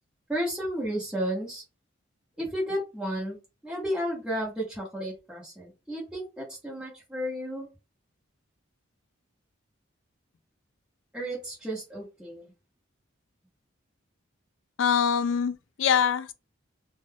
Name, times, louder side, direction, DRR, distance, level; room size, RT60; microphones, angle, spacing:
voice 1, 0.3-1.6 2.4-3.4 3.6-7.7 11.1-12.5, equal, 5° right, 1.1 m, -32 dB
voice 2, 14.8-16.3, left 7 dB, 65° left, 0.4 m, -24 dB
2.5 x 2.2 x 3.4 m
head